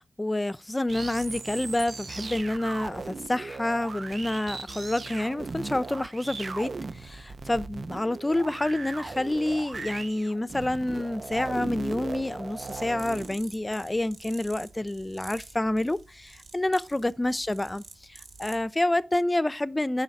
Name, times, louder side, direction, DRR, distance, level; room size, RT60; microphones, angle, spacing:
voice 1, 0.0-17.8 18.1-20.0, left 1 dB, 20° left, 0.7 m, -28 dB
sound 1, 0.9-13.3, right 4 dB, 55° right, 0.8 m, -38 dB
sound 2, 12.6-18.7, right 4 dB, 80° right, 2.4 m, -49 dB
9.5 x 6.4 x 6.0 m
wide cardioid pair, 85°, 0 cm